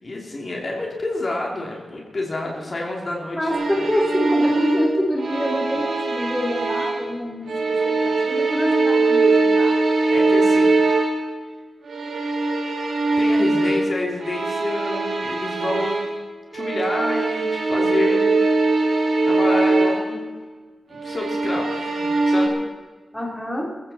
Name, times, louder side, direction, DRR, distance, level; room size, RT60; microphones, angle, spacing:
voice 1, 0.0-3.5 10.1-10.7 13.2-16.0 16.5-18.4 19.3-20.3 20.9-22.5, left 2 dB, 35° left, -1 dB, 2.9 m, -28 dB
voice 2, 3.3-7.6 7.8-9.7 23.1-23.7, equal, 5° left, -2 dB, 3.3 m, -26 dB
sound 1, 3.5-7.1 7.5-11.3 11.8-16.2 16.5-20.1 20.9-22.5, right 3 dB, 75° right, 4.8 m, -21 dB
22.0 x 15.0 x 4.2 m, 1.4 s
wide cardioid pair, 150°, 0 cm